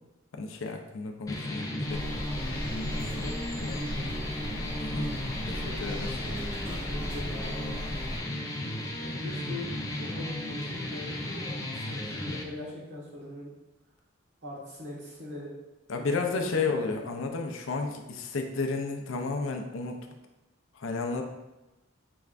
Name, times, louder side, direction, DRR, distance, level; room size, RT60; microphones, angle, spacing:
voice 1, 0.3-2.0 4.8-5.1 5.4-6.2 15.9-20.0 20.7-21.2, left 4 dB, 80° left, 4 dB, 0.6 m, -32 dB
sound 1, 1.3-12.4, left 1 dB, 15° left, 0.4 m, -35 dB
voice 2, 1.3-1.7 2.8-4.6 5.4-7.7 9.0-13.5 14.4-15.5 15.9-17.1, left 1 dB, 60° right, -5 dB, 1.4 m, -42 dB
sound 2, 1.9-8.2, equal, 15° right, 1.2 m, -37 dB
6.0 x 3.3 x 2.5 m, 1.0 s
head